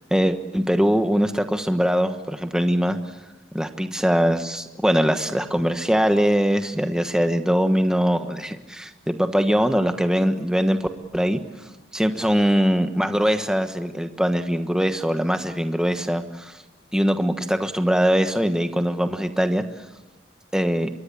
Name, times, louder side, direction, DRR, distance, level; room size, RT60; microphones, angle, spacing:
voice 1, 0.1-3.0 3.5-10.8 11.1-11.4 11.9-16.5 16.9-19.6 20.5-20.9, equal, 5° right, 7 dB, 1.3 m, -22 dB
26.0 x 22.5 x 8.5 m, 1.0 s
head